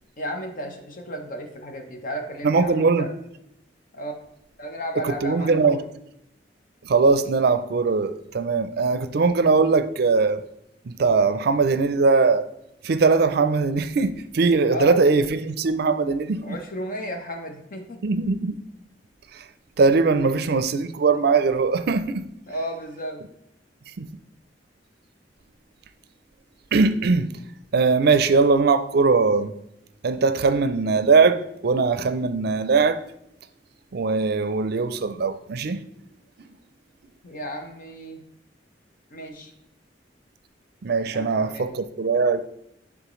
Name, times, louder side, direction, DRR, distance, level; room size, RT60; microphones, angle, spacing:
voice 1, 0.2-3.1 3.9-4.1 4.6-5.9 14.7-15.0 16.4-18.0 22.5-23.2 37.2-38.2 39.1-39.5 41.1-41.7, equal, 50° left, 0.9 m, -33 dB
voice 2, 2.4-3.1 5.0-5.8 6.8-10.4 10.9-12.5 12.8-16.6 18.0-18.6 19.3-19.4 19.8-22.3 24.0-24.1 26.7-27.3 27.7-29.5 30.0-33.0 33.9-35.8 40.8-42.5, right 4 dB, 60° right, 0.4 m, -20 dB
10.5 x 3.6 x 3.1 m
head